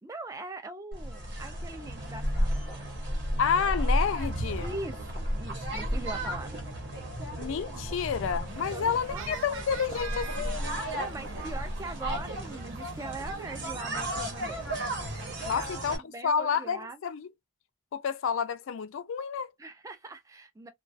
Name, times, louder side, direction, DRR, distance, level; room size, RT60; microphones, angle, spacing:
voice 1, 0.0-3.0 4.6-6.6 8.7-9.4 10.9-14.8 15.6-17.0 19.6-20.7, right 3 dB, 15° right, 0.3 m, -42 dB
sound 1, 0.9-16.0, equal, 55° right, 0.9 m, -33 dB
voice 2, 3.4-4.7 7.4-10.6 15.5-17.3 17.9-19.5, left 6 dB, 75° left, 0.4 m, -30 dB
sound 2, 8.5-15.4, right 5 dB, 75° right, 0.5 m, -46 dB
2.3 x 2.2 x 2.4 m
head